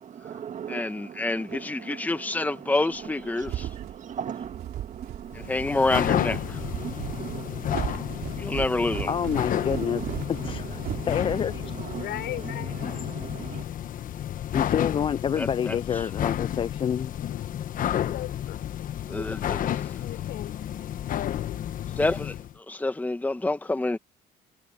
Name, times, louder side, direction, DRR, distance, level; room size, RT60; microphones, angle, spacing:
voice 1, 0.0-13.7, right 8 dB, 45° right, 1.7 m, -40 dB
voice 2, 0.7-3.7 5.3-6.6 8.4-9.1 15.4-15.8 19.1-19.7 22.0-24.0, left 2 dB, 10° left, 1.2 m, -28 dB
sound 1, 3.0-11.9, right 12 dB, 70° right, 3.5 m, -37 dB
sound 2, 5.3-22.5, left 11 dB, 55° left, 1.1 m, -31 dB
voice 3, 9.1-10.0 10.3-10.8 11.1-11.6 14.5-17.1, left 8 dB, 30° left, 0.3 m, -27 dB
voice 4, 12.0-12.7 17.3-17.4 18.0-19.3 19.6-20.6 21.1-21.6, left 14 dB, 75° left, 6.2 m, -39 dB
cardioid pair, 110°, 17 cm